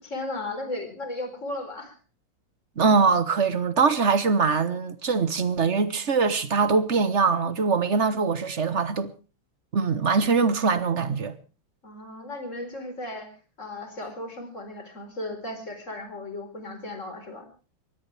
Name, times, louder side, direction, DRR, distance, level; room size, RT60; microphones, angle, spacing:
voice 1, 0.0-1.9 11.8-13.3 13.6-17.5, left 2 dB, 35° left, 4.5 m, -35 dB
voice 2, 2.8-9.1 9.7-11.3, right 5 dB, 40° right, 1.2 m, -22 dB
22.5 x 17.5 x 3.4 m
omnidirectional pair, 2.2 m